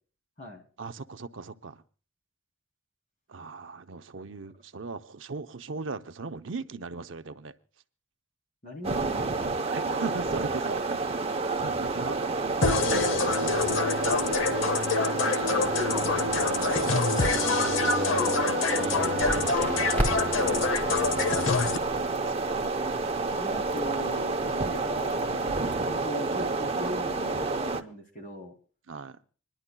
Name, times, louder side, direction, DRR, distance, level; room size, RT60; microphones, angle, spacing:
voice 1, 0.8-1.8 3.3-7.5 9.7-11.3 11.6-13.9 15.2-20.7 20.9-22.7 28.9-29.2, right 4 dB, 70° right, 0.7 m, -39 dB
voice 2, 8.6-9.3 15.1-15.7 21.8-21.9 23.4-25.6 25.8-28.5, left 1 dB, 45° left, 2.7 m, -40 dB
sound 1, 8.8-27.8, right 3 dB, 30° right, 0.8 m, -29 dB
sound 2, 12.6-21.8, left 4 dB, 85° left, 0.9 m, -26 dB
Crackle, 19.2-25.7, equal, 10° left, 3.1 m, -37 dB
26.5 x 11.0 x 2.3 m
head